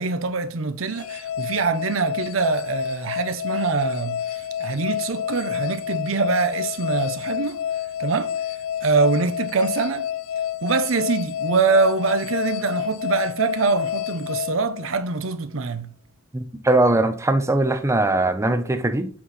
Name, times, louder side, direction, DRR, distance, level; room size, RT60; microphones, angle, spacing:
voice 1, 0.0-7.6 8.0-8.3 8.8-10.1 10.6-15.9, right 4 dB, 80° right, 0.7 m, -24 dB
sound 1, 0.9-15.3, left 9 dB, 85° left, 0.5 m, -29 dB
voice 2, 16.3-19.1, right 2 dB, 15° right, 0.6 m, -20 dB
7.5 x 4.4 x 4.2 m
head